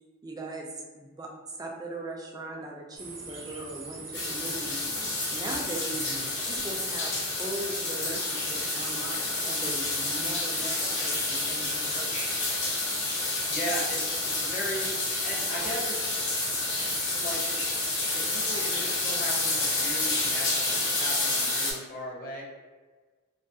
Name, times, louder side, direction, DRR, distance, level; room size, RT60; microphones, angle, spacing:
voice 1, 0.2-4.8 5.3-6.0 6.5-7.1 7.4-12.1, right 2 dB, 20° right, 0 dB, 0.3 m, -39 dB
sound 1, 3.0-21.2, right 2 dB, 65° right, 0.7 m, -44 dB
sound 2, 4.1-21.7, left 2 dB, 70° left, 0.8 m, -29 dB
voice 2, 5.9-6.3 13.5-16.1 17.2-17.6 18.1-22.4, equal, 45° left, -3 dB, 0.6 m, -37 dB
2.3 x 2.3 x 2.6 m, 1.4 s
head